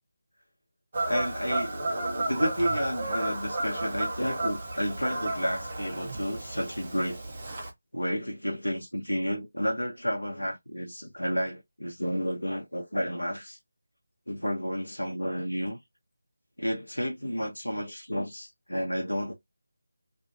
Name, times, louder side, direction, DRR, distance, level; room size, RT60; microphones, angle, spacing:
Fowl / Bird vocalization bird call bird song, 0.9-7.7, right 2 dB, 35° right, 0.8 m, -32 dB
voice 1, 1.1-7.2 7.9-13.6 14.3-15.8 16.6-19.3, equal, 85° left, 0.7 m, -31 dB
2.7 x 2.1 x 2.5 m
figure-of-eight pair, 160°, 0 cm